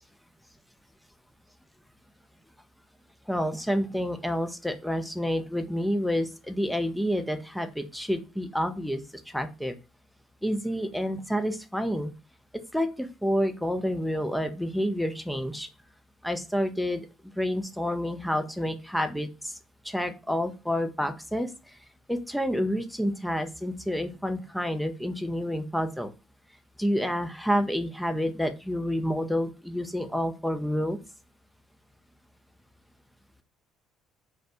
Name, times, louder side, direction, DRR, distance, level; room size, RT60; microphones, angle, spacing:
voice 1, 3.3-9.0 9.3-9.7 10.4-12.1 12.7-15.7 16.2-17.1 17.4-19.6 19.8-21.5 22.1-26.1 26.8-31.0, equal, ahead, 7 dB, 0.4 m, -29 dB
2.2 x 2.0 x 2.8 m, 0.30 s
figure-of-eight pair, 50°, 0 cm